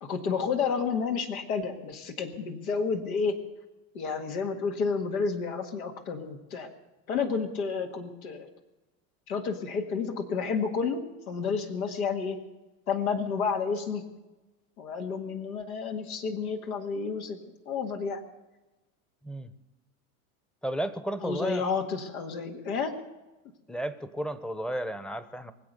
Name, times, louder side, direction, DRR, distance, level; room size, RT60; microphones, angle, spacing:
voice 1, 0.0-3.4 3.9-6.7 7.1-8.5 9.3-12.4 12.9-14.0 14.8-17.4 17.7-18.2 21.2-22.9, left 5 dB, 90° left, 4 dB, 1.9 m, -30 dB
voice 2, 20.6-21.6 23.7-25.5, right 1 dB, ahead, 13 dB, 0.8 m, -33 dB
23.5 x 7.9 x 6.6 m, 1.1 s
supercardioid pair, 115°, 42 cm